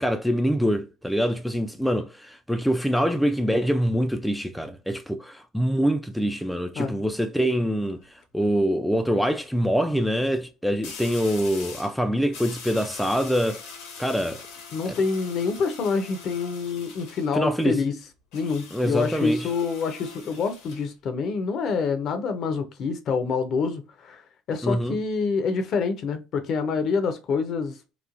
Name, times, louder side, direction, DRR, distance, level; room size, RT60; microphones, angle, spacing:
voice 1, 0.0-8.0 8.3-13.6 14.0-14.4 17.3-17.8 18.7-19.4 24.6-25.0, equal, ahead, 0.3 m, -24 dB
sound 1, 7.7-8.0 10.8-12.0 12.3-17.3 18.3-20.9, left 5 dB, 75° left, 0.9 m, -42 dB
voice 2, 14.7-18.0 18.3-24.2 24.5-27.8, left 5 dB, 50° left, 0.6 m, -26 dB
3.0 x 2.1 x 2.4 m
supercardioid pair, 100°, 0 cm